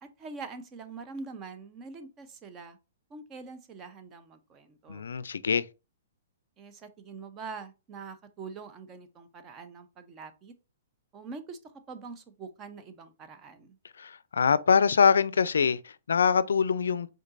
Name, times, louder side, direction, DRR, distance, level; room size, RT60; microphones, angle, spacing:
voice 1, 0.0-2.8 3.1-5.1 6.6-10.5 11.1-11.6 11.9-13.8, right 4 dB, 25° right, 0.6 m, -44 dB
voice 2, 4.9-5.6 14.0-17.1, left 6 dB, 90° left, 0.3 m, -24 dB
5.2 x 3.8 x 2.5 m
hypercardioid pair, 145°, 0 cm